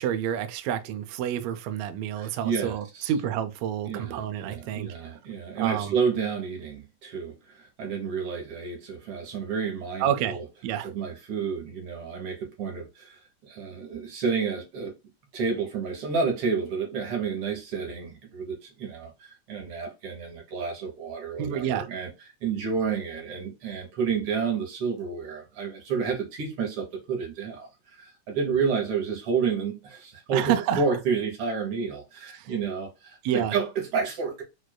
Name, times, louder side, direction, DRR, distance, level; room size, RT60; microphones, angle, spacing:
voice 1, 0.0-5.2 5.6-6.0 10.0-10.9 21.4-21.9 30.3-30.8 32.3-32.5 33.2-33.5, right 10 dB, 75° right, 1.7 m, -29 dB
voice 2, 2.2-3.1 3.9-10.4 10.8-14.9 15.3-22.1 22.4-34.4, right 5 dB, 60° right, 1.8 m, -30 dB
6.3 x 2.5 x 2.2 m
omnidirectional pair, 3.5 m